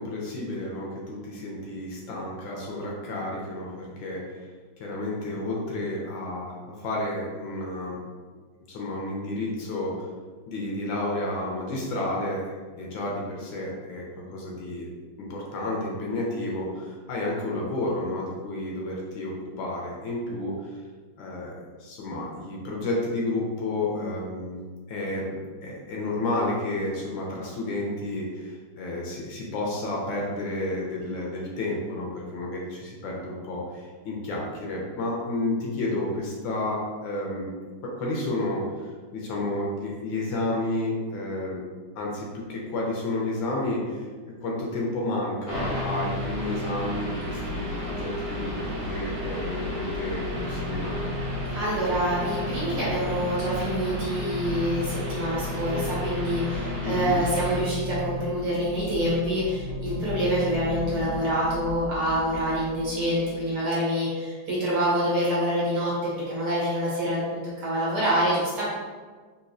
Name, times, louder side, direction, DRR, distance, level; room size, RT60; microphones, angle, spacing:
voice 1, 0.0-4.2 4.8-6.5 6.8-8.0 8.7-10.0 10.5-14.0 14.3-14.9 15.2-20.7 21.2-24.6 24.9-25.3 25.6-37.5 37.8-41.6 42.0-44.1 44.4-51.1 56.8-57.1, left 2 dB, 75° left, -3 dB, 1.3 m, -31 dB
sound 1, 45.5-57.6, equal, 40° right, 0.8 m, -35 dB
sound 2, 45.5-63.3, left 1 dB, 85° right, 1.6 m, -34 dB
voice 2, 51.5-68.6, equal, 60° right, -7 dB, 1.4 m, -26 dB
4.0 x 2.6 x 2.5 m, 1.5 s
omnidirectional pair, 2.3 m